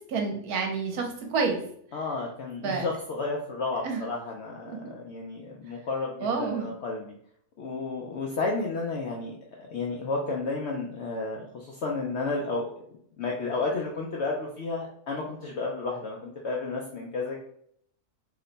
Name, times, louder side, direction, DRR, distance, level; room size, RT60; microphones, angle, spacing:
voice 1, 0.1-1.6 2.6-2.8 3.8-4.0 4.7-4.8 6.2-6.7, right 4 dB, 75° right, 3 dB, 1.1 m, -28 dB
voice 2, 1.9-7.1 7.6-12.7 13.2-17.4, left 3 dB, 70° left, -1 dB, 0.6 m, -32 dB
2.9 x 2.1 x 3.8 m, 0.66 s
omnidirectional pair, 1.6 m